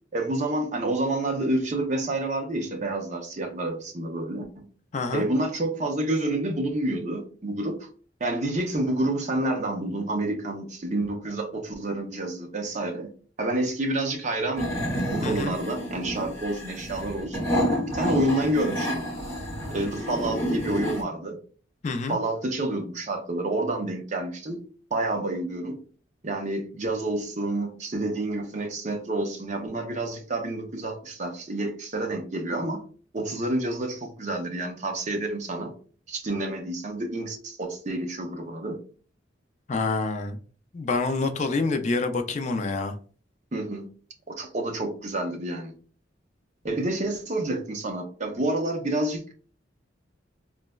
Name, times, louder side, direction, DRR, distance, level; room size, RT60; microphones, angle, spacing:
voice 1, 0.1-4.7 5.1-7.9 8.2-13.1 13.4-14.7 15.1-17.5 17.9-19.0 19.7-21.4 22.1-24.6 24.9-25.8 26.2-32.9 33.1-35.7 36.1-38.8 43.5-43.9 44.3-45.7 46.6-49.3, right 2 dB, 35° right, 0.5 m, -29 dB
voice 2, 4.9-5.3 15.2-15.5 21.8-22.2 39.7-40.4 40.7-43.0, left 3 dB, 35° left, 0.3 m, -27 dB
sound 1, 14.5-21.0, equal, 15° left, 0.8 m, -29 dB
3.8 x 2.1 x 2.2 m
head